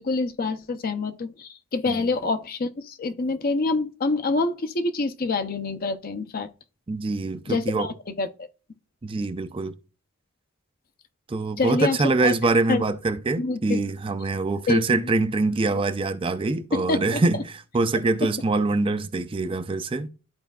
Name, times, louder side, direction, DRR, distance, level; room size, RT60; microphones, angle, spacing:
voice 1, 0.0-6.5 7.5-8.5 11.6-12.3 12.7-12.8 13.4-13.8 14.7-15.1 16.7-17.4, left 3 dB, 40° left, 0.6 m, -26 dB
voice 2, 6.9-7.9 9.0-9.7 11.3-20.1, right 3 dB, 25° right, 0.4 m, -24 dB
12.5 x 4.4 x 2.3 m
head